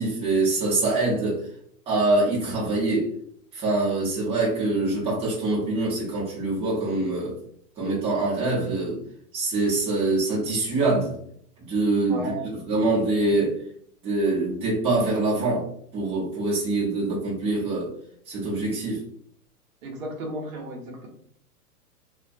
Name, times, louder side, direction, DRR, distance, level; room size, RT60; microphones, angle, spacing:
voice 1, 0.0-1.4 1.9-3.1 3.5-7.4 7.8-9.0 9.3-11.2 11.6-12.3 12.7-13.6 14.0-17.9 18.3-19.0, right 2 dB, 10° right, -6 dB, 0.7 m, -24 dB
voice 2, 12.1-12.5 19.8-21.1, right 1 dB, 60° right, 0 dB, 0.8 m, -33 dB
2.2 x 2.2 x 2.6 m, 0.65 s
hypercardioid pair, 120°, 47 cm